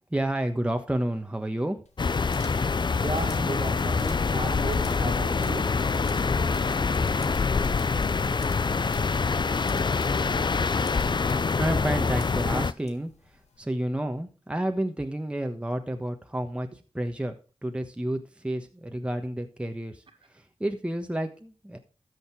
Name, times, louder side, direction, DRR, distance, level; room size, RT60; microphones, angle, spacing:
voice 1, 0.1-1.8 11.3-13.1 13.6-16.7 16.9-17.4 17.6-20.0 20.3-21.8, right 1 dB, 10° right, 1.3 m, -30 dB
sound 1, 1.9-13.6, left 5 dB, 75° left, 1.5 m, -53 dB
sound 2, 2.0-12.7, left 4 dB, 45° left, 0.6 m, -25 dB
voice 2, 3.0-6.0, right 3 dB, 50° right, 1.9 m, -35 dB
13.0 x 6.6 x 4.7 m
cardioid pair, 50°, 11 cm